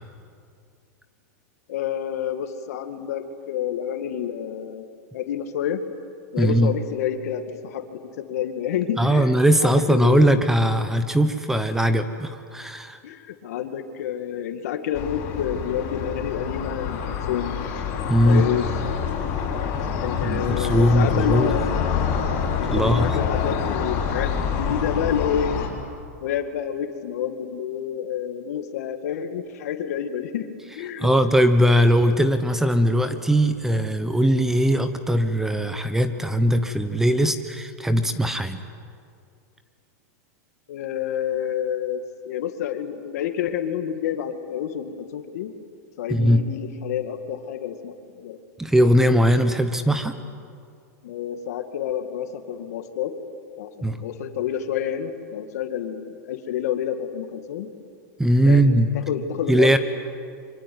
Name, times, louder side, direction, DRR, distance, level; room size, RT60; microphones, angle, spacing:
voice 1, 1.7-4.9 5.1-5.8 6.3-9.3 9.6-10.4 13.0-17.6 18.2-18.7 20.0-21.7 22.5-24.3 24.6-25.6 26.2-30.5 30.7-31.1 40.7-45.5 46.0-48.4 51.0-53.2 53.6-57.7 58.5-58.7 58.9-59.8, left 9 dB, 70° left, 7 dB, 2.2 m, -29 dB
voice 2, 6.4-6.7 9.0-13.0 18.1-18.5 20.2-21.5 22.7-23.2 31.0-38.6 46.1-46.4 48.6-50.1 53.8-54.0 58.2-58.9 59.5-59.8, equal, 5° right, 10 dB, 1.1 m, -20 dB
sound 1, 14.9-25.7, left 7 dB, 45° left, 6.1 m, -26 dB
25.0 x 24.5 x 9.6 m, 2.3 s
supercardioid pair, 150°, 9 cm